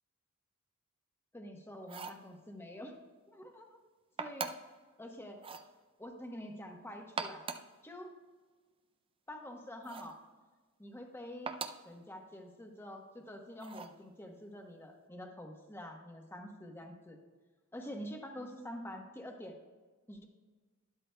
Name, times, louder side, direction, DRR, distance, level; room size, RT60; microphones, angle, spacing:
voice 1, 1.3-2.9 3.3-3.8 4.2-4.5 5.0-5.4 6.0-7.5 7.8-8.1 9.3-10.2 10.8-11.5 11.8-17.2 17.7-19.6 20.1-20.3, equal, 10° left, 2 dB, 1.1 m, -46 dB
sound 1, 1.8-2.3 4.2-4.8 5.4-5.7 7.0-7.8 9.8-10.2 11.5-11.9 13.6-14.0, right 4 dB, 25° right, 0.4 m, -41 dB
12.0 x 11.0 x 2.3 m, 1.3 s
head